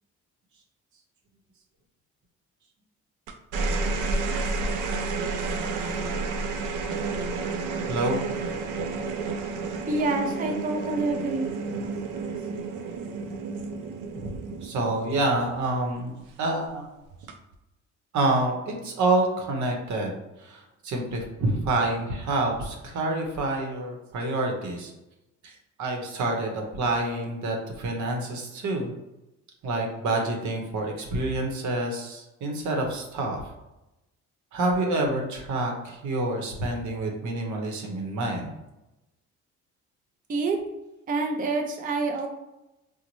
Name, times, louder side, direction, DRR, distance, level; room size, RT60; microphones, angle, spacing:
sound 1, 3.3-15.9 17.1-17.5, right 3 dB, 90° right, 0.5 m, -31 dB
voice 1, 7.9-8.2 14.1-16.1 16.4-16.9 18.1-20.1 20.4-24.9 25.4-28.9 29.6-33.4 34.5-38.5, right 2 dB, 70° right, 2 dB, 0.8 m, -27 dB
voice 2, 9.9-11.5 40.3-40.6 41.1-42.3, right 3 dB, 30° right, 2 dB, 0.5 m, -27 dB
3.9 x 2.1 x 3.0 m, 0.96 s
cardioid pair, 90°, 30 cm